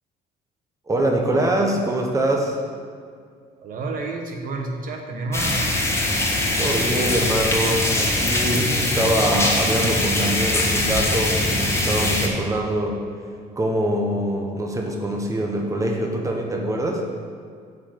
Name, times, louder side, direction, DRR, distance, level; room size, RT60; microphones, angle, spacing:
voice 1, 0.9-2.6 6.6-13.0 13.6-17.0, right 1 dB, 20° right, 1 dB, 1.2 m, -24 dB
voice 2, 3.6-5.7, right 3 dB, 55° right, 2 dB, 1.3 m, -29 dB
sound 1, 5.3-12.3, left 1 dB, 15° left, 1.6 m, -22 dB
8.3 x 5.3 x 7.7 m, 2.2 s
cardioid pair, 110°, 17 cm